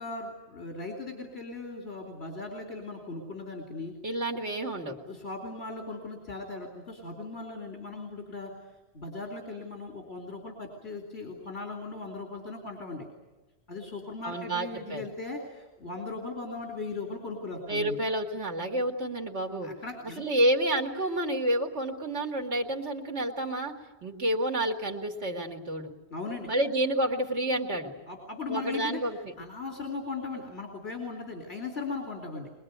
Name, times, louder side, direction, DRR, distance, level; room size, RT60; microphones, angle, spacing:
voice 1, 0.0-3.9 5.1-8.5 8.9-13.1 13.7-18.0 19.6-20.2 26.1-26.5 28.1-29.1 29.4-32.5, left 3 dB, 65° left, 0 dB, 3.4 m, -38 dB
voice 2, 4.0-4.9 14.2-15.0 17.7-19.7 20.2-23.7 24.0-25.9 26.5-27.9 28.5-29.3, right 1 dB, 90° right, 2 dB, 2.6 m, -29 dB
23.0 x 22.0 x 9.5 m, 1.1 s
omnidirectional pair, 1.1 m